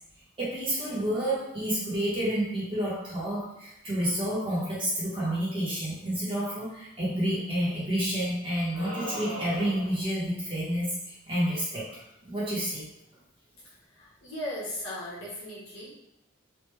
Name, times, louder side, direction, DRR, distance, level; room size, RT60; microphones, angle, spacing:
voice 1, 0.4-12.9, equal, 25° right, -9 dB, 1.1 m, -29 dB
sound 1, 8.7-10.1, equal, 60° right, 1.2 m, -38 dB
voice 2, 13.9-15.9, left 1 dB, 80° left, -9 dB, 1.2 m, -37 dB
3.3 x 2.4 x 3.2 m, 0.85 s
head